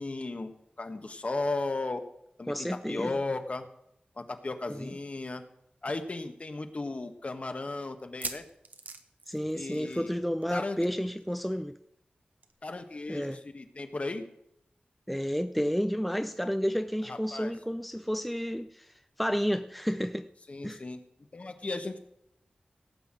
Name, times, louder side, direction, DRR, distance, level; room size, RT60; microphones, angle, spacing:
voice 1, 0.0-2.0 2.4-3.7 4.2-5.4 5.8-8.4 9.5-10.1 10.5-10.9 12.6-14.2 17.1-17.5 20.5-21.0 21.3-22.0, left 2 dB, 45° left, 1.5 m, -35 dB
voice 2, 2.5-3.1 4.7-4.9 9.3-11.7 13.1-13.4 15.1-18.9 19.2-20.3 20.6-20.8, equal, ahead, 0.5 m, -31 dB
sound 1, 5.3-5.4 5.7-5.8 6.4-6.5 8.0-10.1 10.4-10.6 10.9-11.0 12.4-12.5, right 4 dB, 75° right, 1.2 m, -42 dB
17.5 x 5.9 x 8.9 m
wide cardioid pair, 95°, 3 cm